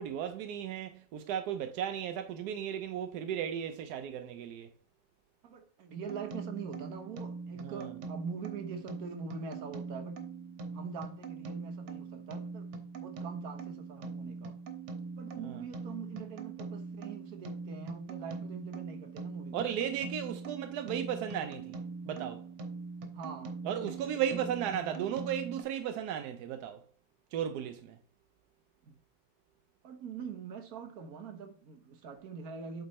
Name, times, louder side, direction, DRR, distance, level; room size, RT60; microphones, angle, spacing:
voice 1, 0.0-4.7 7.6-7.9 15.4-15.6 19.5-21.8 22.0-22.4 23.6-26.8 27.3-28.0, right 9 dB, 75° right, 0.9 m, -35 dB
voice 2, 5.4-10.2 10.7-14.6 15.2-19.7 23.1-24.7 28.8-29.0 29.8-32.8, right 6 dB, 55° right, 1.3 m, -44 dB
sound 1, 6.1-25.6, right 4 dB, 90° right, 1.8 m, -42 dB
8.0 x 3.8 x 4.1 m
omnidirectional pair, 2.2 m